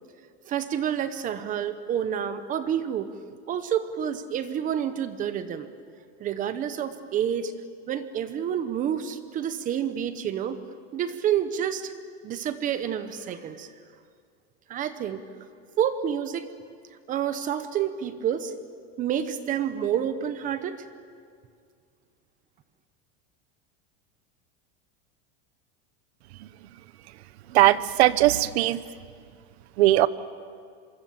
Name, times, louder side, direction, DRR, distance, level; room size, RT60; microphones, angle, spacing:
voice 1, 0.4-3.1 3.5-5.7 6.2-7.5 7.9-10.6 10.9-11.9 12.2-13.7 14.7-15.3 15.8-16.5 17.1-18.5 19.0-20.8, right 9 dB, 25° right, 12 dB, 0.9 m, -28 dB
voice 2, 27.5-28.8 29.8-30.1, right 16 dB, 75° right, 16 dB, 1.0 m, -19 dB
26.5 x 24.0 x 7.3 m, 2.1 s
supercardioid pair, 170°, 32 cm